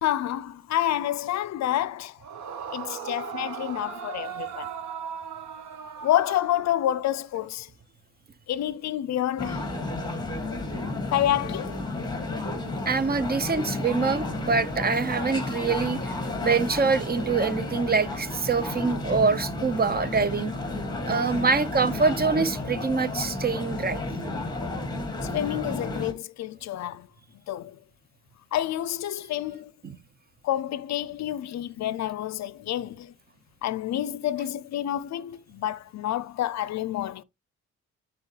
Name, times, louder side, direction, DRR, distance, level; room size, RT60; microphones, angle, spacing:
voice 1, 0.0-2.2 2.7-4.7 6.0-7.7 8.5-9.7 11.1-11.9 25.3-27.1 27.5-27.8 28.5-29.7 30.4-33.1 33.6-37.2, left 12 dB, 65° left, 0.5 m, -28 dB
Yell / Screaming, 2.2-7.1, right 8 dB, 70° right, 1.4 m, -37 dB
sound 1, 9.4-26.1, left 2 dB, 15° left, 2.1 m, -32 dB
voice 2, 12.9-16.1 16.4-20.5 21.1-24.0 29.8-30.0, right 4 dB, 30° right, 0.8 m, -25 dB
10.5 x 4.2 x 3.2 m
cardioid pair, 90°, 30 cm